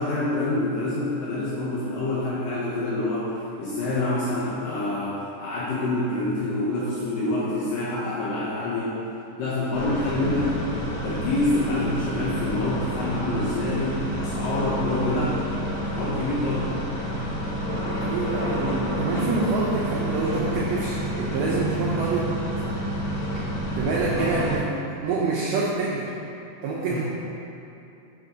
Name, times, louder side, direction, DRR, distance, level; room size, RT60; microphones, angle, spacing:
voice 1, 0.0-3.3 3.6-8.9 9.4-10.6 11.0-15.5 15.8-16.7 24.2-24.3 26.9-27.0, left 2 dB, 75° left, -9 dB, 2.0 m, -27 dB
sound 1, 9.7-24.6, equal, 55° left, 2.4 m, -29 dB
voice 2, 17.7-22.3 23.7-24.7 25.0-26.2 26.6-27.0, right 3 dB, 80° right, -5 dB, 2.3 m, -26 dB
6.3 x 5.5 x 3.8 m, 2.8 s
omnidirectional pair, 4.9 m